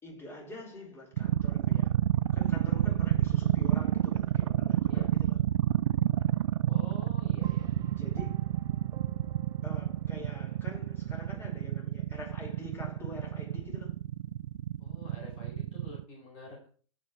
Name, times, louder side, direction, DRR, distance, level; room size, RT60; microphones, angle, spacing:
voice 1, 0.0-1.9 2.3-5.4 8.0-8.4 9.6-13.9, left 1 dB, 15° left, 5.0 m, -46 dB
sound 1, 1.2-16.0, right 13 dB, 70° right, 0.4 m, -28 dB
voice 2, 6.6-7.7 14.8-16.7, left 1 dB, 40° left, 4.7 m, -48 dB
sound 2, 7.4-11.6, right 10 dB, 20° right, 0.5 m, -48 dB
17.0 x 6.0 x 3.2 m
hypercardioid pair, 120°, 17 cm